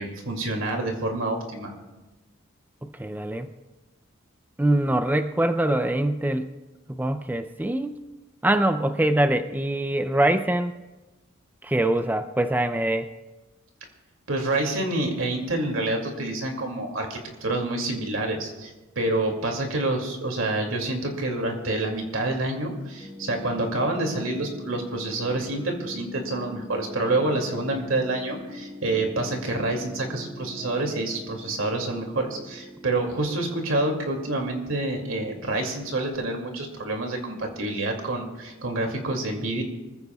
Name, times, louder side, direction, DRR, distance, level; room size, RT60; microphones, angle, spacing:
voice 1, 0.0-1.7 14.3-39.6, right 2 dB, 75° right, 2 dB, 2.5 m, -27 dB
voice 2, 2.8-3.5 4.6-6.5 6.9-8.0 8.4-10.7 11.6-13.1, right 1 dB, 10° right, 8 dB, 0.4 m, -23 dB
sound 1, 23.0-36.1, equal, 25° right, 3.6 m, -43 dB
25.0 x 15.0 x 2.3 m, 1.2 s
head